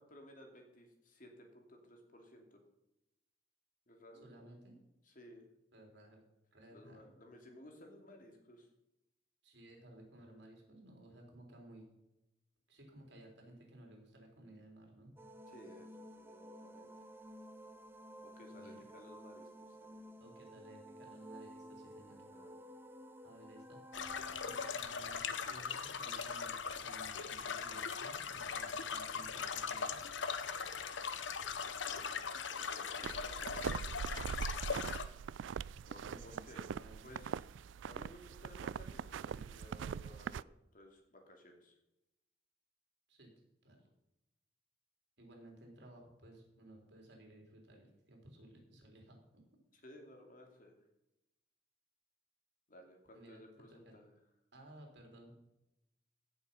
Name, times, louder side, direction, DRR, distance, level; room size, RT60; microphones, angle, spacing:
voice 1, 0.0-2.6 3.9-4.4 5.0-5.5 6.7-8.7 10.2-10.4 15.5-16.9 18.2-20.1 22.3-22.6 24.5-24.7 31.9-32.1 32.5-34.1 35.8-36.8 37.0-37.4 37.8-41.7 49.7-50.7 52.7-54.1, left 1 dB, 45° left, 2 dB, 2.7 m, -57 dB
voice 2, 4.2-4.8 5.7-6.2 6.5-7.1 9.4-11.8 12.7-15.1 18.6-18.8 20.2-22.2 23.2-23.8 24.4-26.6 26.8-30.0 36.1-37.1 43.1-43.3 43.6-43.8 45.2-49.2 53.1-53.4 53.7-53.9 54.5-55.3, right 1 dB, 60° right, 1 dB, 4.0 m, -57 dB
sound 1, 15.2-24.7, equal, 10° right, 0.8 m, -53 dB
sound 2, 23.9-35.0, left 6 dB, 75° left, 0.9 m, -40 dB
sound 3, 33.0-40.4, right 7 dB, 80° right, 0.3 m, -42 dB
16.5 x 7.1 x 5.6 m, 0.90 s
head